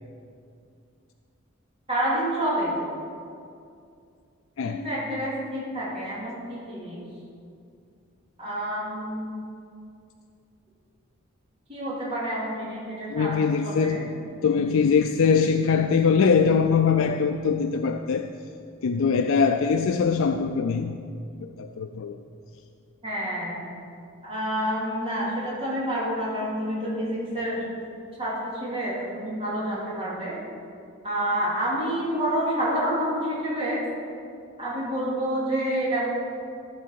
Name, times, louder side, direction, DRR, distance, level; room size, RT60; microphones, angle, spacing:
voice 1, 1.9-2.8 4.6-7.0 8.4-9.3 11.7-14.0 23.0-23.6 24.2-27.7 28.2-30.4 31.0-33.8 34.6-36.0, equal, 25° right, -7 dB, 2.4 m, -28 dB
voice 2, 13.1-14.2 14.4-18.3 18.8-21.0 21.4-22.2, left 5 dB, 70° left, 6 dB, 0.4 m, -22 dB
14.0 x 5.1 x 6.4 m, 2.4 s
head